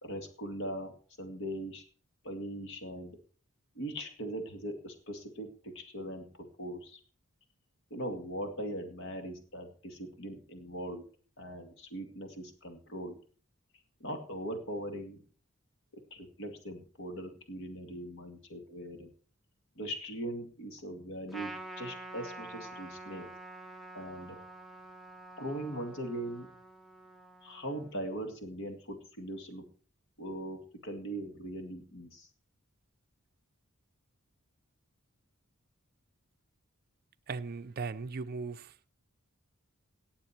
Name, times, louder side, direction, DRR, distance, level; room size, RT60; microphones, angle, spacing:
voice 1, 0.0-0.9 1.2-1.8 2.2-3.2 3.7-7.0 7.9-11.0 11.4-13.2 14.0-15.2 15.9-19.1 19.8-23.3 23.9-24.4 25.4-26.5 27.4-29.7 30.2-32.3, right 1 dB, 65° left, 2.3 m, -40 dB
Trumpet, 21.3-28.0, right 1 dB, ahead, 1.1 m, -47 dB
voice 2, 37.3-38.7, right 4 dB, 45° right, 0.5 m, -38 dB
18.0 x 7.3 x 4.4 m
head